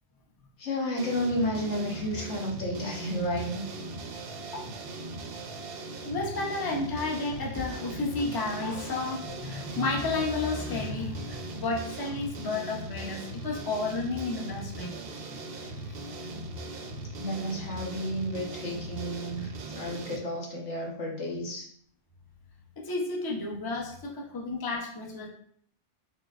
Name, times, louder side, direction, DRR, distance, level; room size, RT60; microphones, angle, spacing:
voice 1, 0.6-3.7 15.6-16.0 16.8-16.9 17.2-21.7, equal, 85° left, -2 dB, 1.4 m, -32 dB
sound 1, 1.0-20.2, right 2 dB, 65° right, 0.7 m, -39 dB
voice 2, 6.0-14.9 15.9-16.0 22.8-25.3, left 3 dB, 25° left, -2 dB, 0.6 m, -32 dB
4.9 x 3.2 x 2.4 m, 0.62 s
omnidirectional pair, 1.2 m